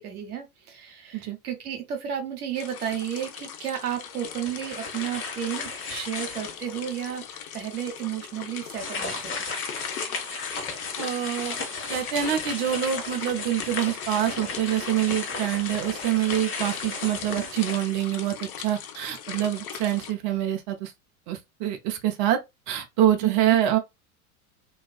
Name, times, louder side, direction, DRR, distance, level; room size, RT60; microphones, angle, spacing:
voice 1, 0.0-9.3 23.2-23.6, right 9 dB, 85° right, 0.9 m, -33 dB
sound 1, 2.5-20.1, left 8 dB, 75° left, 0.6 m, -40 dB
sound 2, 4.2-6.8 7.3-7.4 8.7-18.5, left 4 dB, 30° left, 0.9 m, -35 dB
voice 2, 11.0-11.6 11.9-20.9 21.3-22.4 22.7-23.8, right 11 dB, 45° right, 0.6 m, -26 dB
2.3 x 2.3 x 2.3 m
hypercardioid pair, 90°, 44 cm